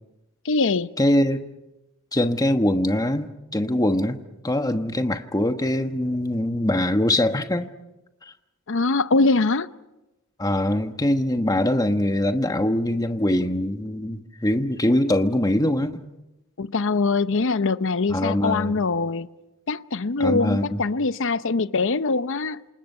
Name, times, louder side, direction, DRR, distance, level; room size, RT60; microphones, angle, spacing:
voice 1, 0.4-0.9 8.7-9.7 16.6-19.3 19.7-22.6, left 3 dB, 60° left, 0.7 m, -23 dB
voice 2, 1.0-1.4 2.1-4.2 4.4-7.7 10.4-16.0 18.1-18.7 20.2-20.8, left 1 dB, 15° left, 1.2 m, -23 dB
27.5 x 27.5 x 5.6 m
head